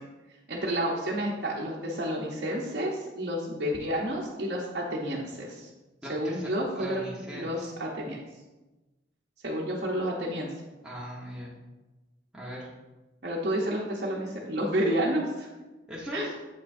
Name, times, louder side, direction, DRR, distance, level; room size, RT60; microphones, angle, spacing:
voice 1, 0.5-5.7 6.1-8.2 9.4-10.5 13.2-15.5 16.1-16.3, equal, 60° right, -5 dB, 0.9 m, -30 dB
voice 2, 6.0-6.5 6.7-7.5 10.8-11.5 12.3-12.7 15.9-16.3, equal, 5° right, -6 dB, 1.1 m, -38 dB
7.5 x 5.6 x 2.6 m, 1.1 s
head